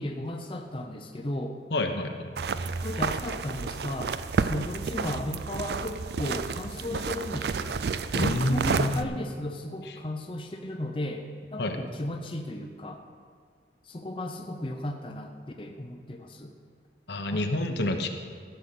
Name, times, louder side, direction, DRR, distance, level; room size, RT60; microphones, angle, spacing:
voice 1, 0.0-1.6 2.8-7.8 8.1-11.3 11.5-13.0 13.8-15.3 15.6-16.5 17.3-17.5, left 1 dB, 30° left, 3 dB, 0.6 m, -35 dB
voice 2, 1.7-2.2 8.2-9.2 11.6-11.8 17.1-18.1, left 1 dB, 70° left, 5 dB, 1.0 m, -28 dB
sound 1, 2.4-9.0, right 5 dB, 60° right, 0.4 m, -30 dB
15.0 x 6.8 x 5.9 m, 2.1 s
head